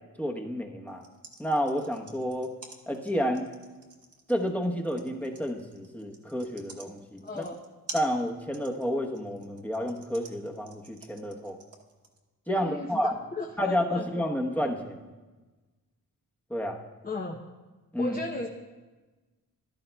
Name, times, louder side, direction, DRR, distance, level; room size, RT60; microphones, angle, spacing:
voice 1, 0.2-1.0 1.4-2.5 2.9-3.5 4.3-7.4 7.9-11.6 12.5-13.2 13.6-15.1 16.5-16.8 17.9-18.2, equal, 5° left, 1 dB, 1.0 m, -30 dB
sound 1, 0.9-12.2, right 3 dB, 45° right, 1.1 m, -47 dB
voice 2, 7.2-7.6 12.6-14.0 17.0-17.4 18.0-18.5, left 3 dB, 25° left, 2 dB, 0.7 m, -35 dB
13.5 x 11.0 x 2.3 m, 1.2 s
cardioid pair, 70°, 34 cm